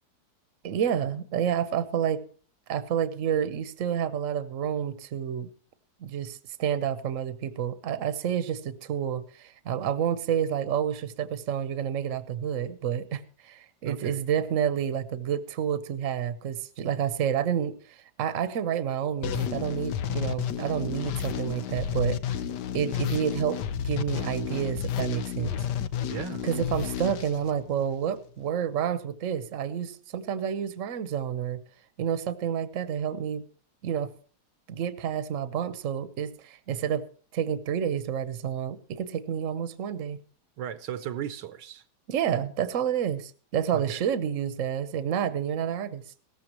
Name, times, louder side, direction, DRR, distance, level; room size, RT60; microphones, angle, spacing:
voice 1, 0.6-2.2 2.7-5.5 6.0-22.2 22.7-25.5 26.4-31.6 32.0-33.4 33.8-34.1 34.7-37.1 37.3-40.2 42.1-46.0, right 9 dB, 50° right, 1.2 m, -29 dB
voice 2, 13.8-14.2 26.1-26.4 40.6-41.8 43.7-44.0, right 10 dB, 75° right, 1.4 m, -36 dB
sound 1, 19.2-28.1, left 9 dB, 70° left, 1.3 m, -32 dB
17.5 x 14.0 x 3.0 m
omnidirectional pair, 1.9 m